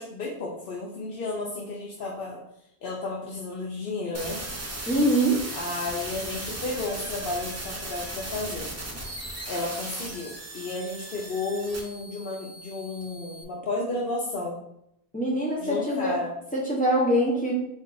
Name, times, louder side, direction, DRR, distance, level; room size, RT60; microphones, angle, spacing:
voice 1, 0.0-2.4 2.8-4.4 5.5-8.7 9.5-14.6 15.6-16.3, left 2 dB, 60° left, -4 dB, 0.8 m, -32 dB
sound 1, 4.1-13.4, right 1 dB, 20° right, 0.4 m, -37 dB
voice 2, 4.9-5.4 15.1-16.2 16.5-17.5, right 1 dB, 10° left, -5 dB, 0.8 m, -23 dB
3.8 x 2.7 x 3.8 m, 0.76 s
omnidirectional pair, 1.2 m